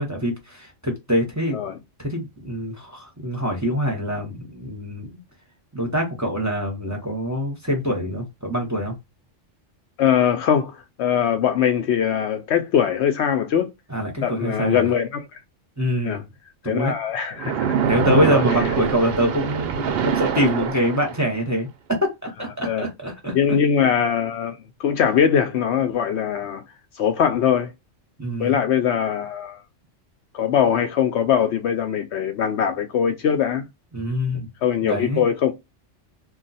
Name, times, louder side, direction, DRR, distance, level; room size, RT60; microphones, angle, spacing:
voice 1, 0.0-1.6 2.0-5.1 5.7-9.0 13.9-14.8 15.8-16.2 16.6-16.9 17.8-23.4 28.2-28.6 33.9-34.5 34.8-35.2, equal, 15° right, 0.7 m, -25 dB
voice 2, 10.0-13.7 14.2-15.3 16.0-16.2 16.6-17.7 18.1-18.4 22.6-22.8 23.3-26.6 27.0-27.7 28.4-29.6 30.3-33.6 34.6-35.5, left 8 dB, 65° left, 0.8 m, -21 dB
Splash splatter, 17.4-21.4, right 7 dB, 60° right, 0.7 m, -24 dB
2.4 x 2.3 x 4.0 m
omnidirectional pair, 1.3 m